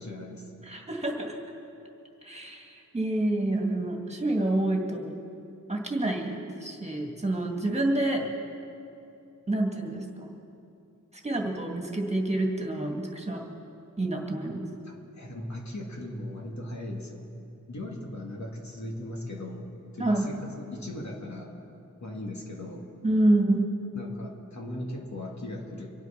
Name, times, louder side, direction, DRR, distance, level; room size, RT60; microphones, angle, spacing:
voice 1, 0.0-0.5 14.8-17.2 17.7-21.6 22.0-22.9 23.9-25.9, left 1 dB, 60° left, 0 dB, 2.3 m, -38 dB
voice 2, 0.7-1.4 2.2-5.1 5.7-8.2 9.5-10.3 11.2-13.4 14.0-14.6 20.0-20.3 23.0-23.7, right 1 dB, 20° right, 1 dB, 2.3 m, -27 dB
24.5 x 8.3 x 5.9 m, 2.7 s
cardioid pair, 55°, 32 cm